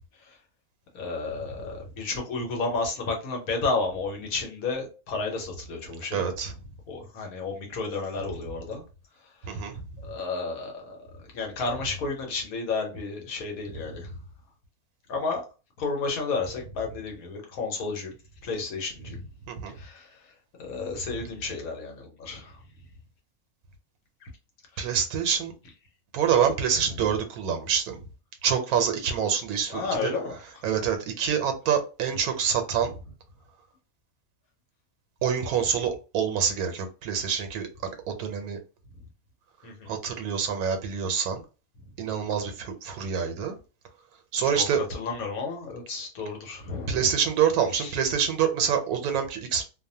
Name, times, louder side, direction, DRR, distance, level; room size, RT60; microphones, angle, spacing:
voice 1, 0.9-6.2 6.9-8.8 9.4-9.7 10.0-14.1 15.1-15.4 15.8-18.1 18.4-19.2 19.7-20.3 20.6-22.6 24.2-24.3 24.7-24.8 27.0-27.1 29.7-30.6 39.6-39.9 44.4-47.1 47.7-48.0, left 4 dB, 75° left, 1.3 m, -32 dB
voice 2, 6.1-6.5 9.4-9.8 19.5-19.7 24.8-25.5 26.1-28.0 28.4-30.1 30.6-33.0 35.2-38.6 39.9-41.4 42.0-43.6 44.3-44.8 46.9-49.7, right 7 dB, 90° right, 1.1 m, -26 dB
2.8 x 2.1 x 2.6 m
omnidirectional pair, 1.5 m